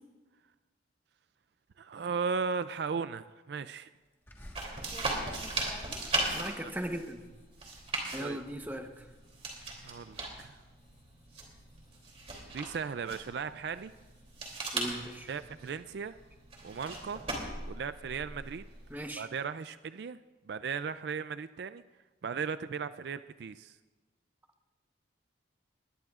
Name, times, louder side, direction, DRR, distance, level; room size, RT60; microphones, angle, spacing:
voice 1, 1.8-3.9 6.3-6.7 8.2-8.4 9.8-10.6 12.5-13.9 15.3-16.1 16.6-17.2 17.7-18.6 19.2-20.2 20.5-21.8 22.2-23.8, right 5 dB, 60° right, 13 dB, 0.4 m, -36 dB
sound 1, 4.3-9.6 10.0-10.4 10.8-12.8 13.4-15.6, equal, 10° left, 1.4 m, -55 dB
sound 2, 4.5-18.9, right 2 dB, 35° right, 2.9 m, -39 dB
voice 2, 6.3-7.2 8.1-9.0 14.7-15.3 18.9-19.3, right 1 dB, 10° right, 5 dB, 0.9 m, -38 dB
20.5 x 19.5 x 2.4 m, 1.2 s
head